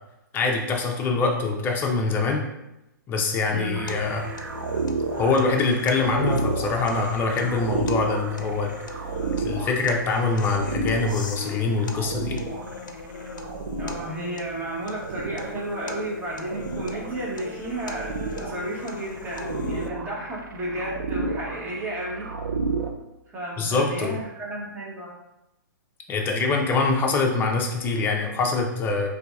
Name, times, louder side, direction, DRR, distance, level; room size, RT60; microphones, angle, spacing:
voice 1, 0.3-2.5 3.1-4.3 5.2-8.7 9.4-12.4 23.6-24.2 26.1-29.1, left 3 dB, 20° left, 1 dB, 0.5 m, -24 dB
voice 2, 3.5-4.0 13.8-22.3 23.3-25.1, right 1 dB, 15° right, -5 dB, 1.0 m, -33 dB
sound 1, 3.7-22.9, right 3 dB, 75° right, 0.5 m, -32 dB
sound 2, 3.9-19.9, left 4 dB, 70° left, 0.4 m, -40 dB
3.9 x 2.7 x 2.3 m, 0.93 s
hypercardioid pair, 130°, 11 cm